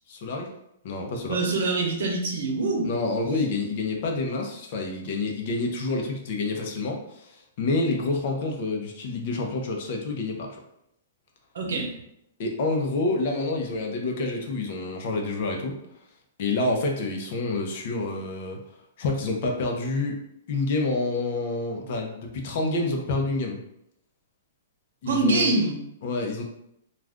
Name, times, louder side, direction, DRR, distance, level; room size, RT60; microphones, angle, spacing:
voice 1, 0.1-0.5 0.8-1.4 2.8-10.5 12.4-15.7 16.4-18.6 19.0-20.2 20.5-23.6 25.0-25.5 26.0-26.5, left 3 dB, 50° left, 1 dB, 0.7 m, -28 dB
voice 2, 1.3-3.0 11.5-11.9 25.1-25.8, right 3 dB, 80° right, 1 dB, 0.8 m, -24 dB
2.4 x 2.4 x 3.5 m, 0.77 s
hypercardioid pair, 150°, 0 cm